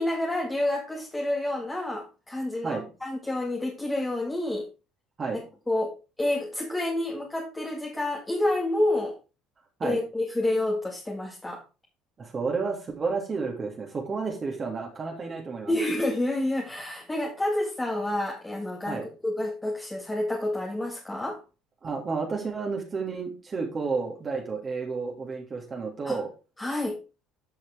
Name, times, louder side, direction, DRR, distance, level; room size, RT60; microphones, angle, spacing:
voice 1, 0.0-4.7 5.7-9.1 9.8-11.6 15.7-21.4 26.1-26.2 26.6-27.0, left 1 dB, 15° left, -1 dB, 2.0 m, -29 dB
voice 2, 12.2-15.7 18.9-19.1 21.8-26.3, right 4 dB, 35° right, 0 dB, 2.3 m, -31 dB
10.5 x 5.7 x 3.5 m, 0.30 s
hypercardioid pair, 70°, 0 cm